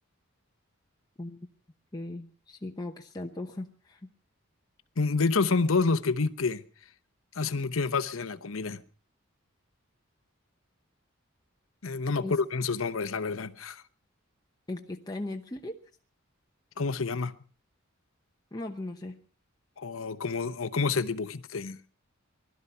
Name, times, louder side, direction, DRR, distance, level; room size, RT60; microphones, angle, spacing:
voice 1, 1.9-4.1 12.2-12.3 14.7-15.8 18.5-19.2, left 2 dB, 20° left, 0.8 m, -38 dB
voice 2, 5.0-6.6 7.4-8.8 11.8-13.8 16.8-17.3 19.8-21.8, left 4 dB, 75° left, 0.9 m, -28 dB
20.0 x 12.5 x 5.6 m
head